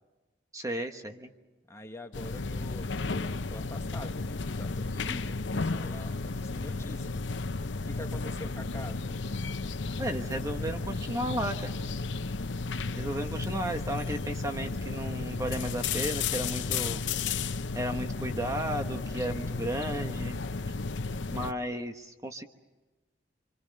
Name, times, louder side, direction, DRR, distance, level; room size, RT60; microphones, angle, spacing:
voice 1, 0.5-1.3 10.0-11.9 13.0-17.0 17.7-20.4 20.7-20.8 21.3-22.5, right 1 dB, 20° right, 5 dB, 1.2 m, -34 dB
voice 2, 1.7-7.2 7.8-9.2, left 1 dB, 15° left, 4 dB, 1.6 m, -45 dB
sound 1, 2.1-21.5, left 4 dB, 75° left, 0.8 m, -33 dB
26.5 x 25.5 x 6.6 m, 1.2 s
head